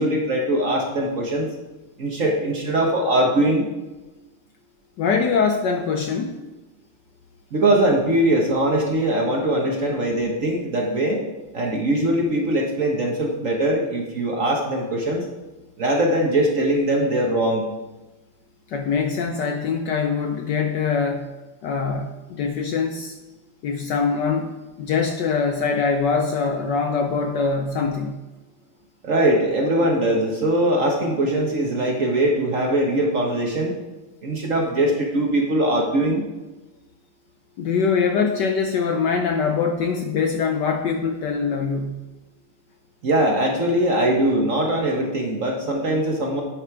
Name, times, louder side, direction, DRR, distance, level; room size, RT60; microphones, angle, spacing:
voice 1, 0.0-1.5 2.0-3.7 7.5-11.2 11.5-15.3 15.8-17.6 29.0-33.7 34.2-36.2 43.0-46.4, right 1 dB, 45° right, 1 dB, 1.2 m, -21 dB
voice 2, 5.0-6.4 18.7-21.3 21.6-23.1 23.6-24.5 24.8-28.2 37.6-42.0, left 5 dB, 70° left, 5 dB, 1.1 m, -23 dB
8.6 x 8.0 x 4.6 m, 1.1 s
omnidirectional pair, 2.4 m